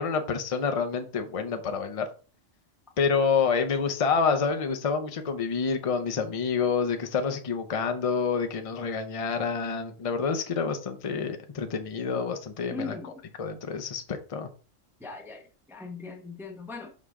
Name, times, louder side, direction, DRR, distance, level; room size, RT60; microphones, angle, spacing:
voice 1, 0.0-2.1 3.0-13.0 13.4-14.5, left 5 dB, 35° left, 0.6 m, -28 dB
voice 2, 12.7-13.2 15.0-16.9, left 4 dB, ahead, 0.6 m, -39 dB
5.7 x 4.8 x 3.6 m
omnidirectional pair, 1.3 m